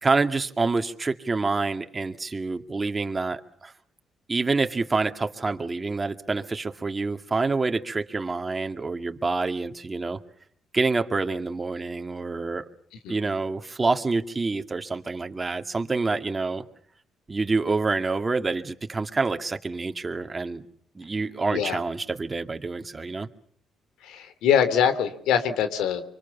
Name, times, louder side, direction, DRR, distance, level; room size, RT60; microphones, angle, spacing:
voice 1, 0.0-3.7 4.3-10.2 10.7-12.7 13.1-16.7 17.3-20.6 20.9-23.3, right 3 dB, 25° right, 6 dB, 2.2 m, -27 dB
voice 2, 24.0-26.0, left 8 dB, 90° left, 11 dB, 3.2 m, -23 dB
25.5 x 25.5 x 7.2 m, 0.63 s
cardioid pair, 90°, 0 cm